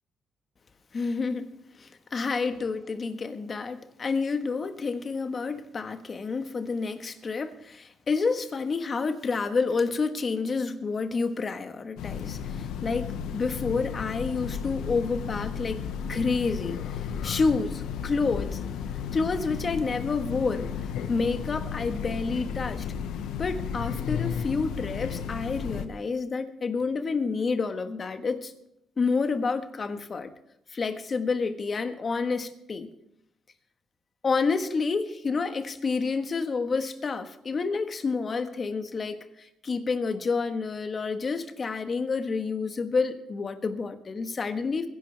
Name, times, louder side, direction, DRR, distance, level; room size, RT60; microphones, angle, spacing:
voice 1, 0.9-1.5 1.8-16.8 17.2-18.6 19.1-22.9 23.4-28.5 29.0-30.3 30.7-32.9 34.2-44.9, left 4 dB, 40° left, 8 dB, 1.4 m, -29 dB
Train, 12.0-25.9, left 7 dB, 85° left, 0.9 m, -34 dB
22.5 x 11.0 x 3.4 m, 0.80 s
cardioid pair, 90°, 0 cm